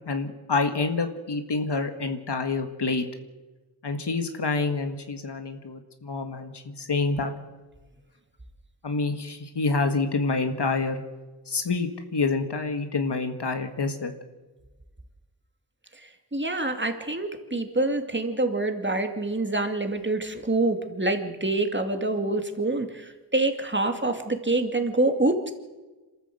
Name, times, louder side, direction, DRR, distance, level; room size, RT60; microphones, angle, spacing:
voice 1, 0.1-3.0 3.8-7.3 8.8-11.0 11.5-14.1, left 3 dB, 75° left, 6 dB, 1.7 m, -27 dB
voice 2, 16.0-25.5, right 2 dB, 25° right, 5 dB, 2.5 m, -26 dB
27.0 x 13.5 x 7.9 m, 1.2 s
wide cardioid pair, 70°, 41 cm